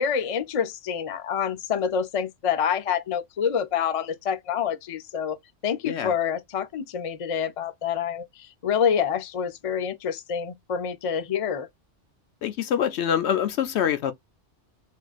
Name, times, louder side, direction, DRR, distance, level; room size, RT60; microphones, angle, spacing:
voice 1, 0.0-5.4 5.6-11.7, left 7 dB, 55° left, 0.3 m, -27 dB
voice 2, 12.4-14.1, left 9 dB, 70° left, 0.9 m, -25 dB
4.3 x 2.5 x 2.4 m
omnidirectional pair, 1.2 m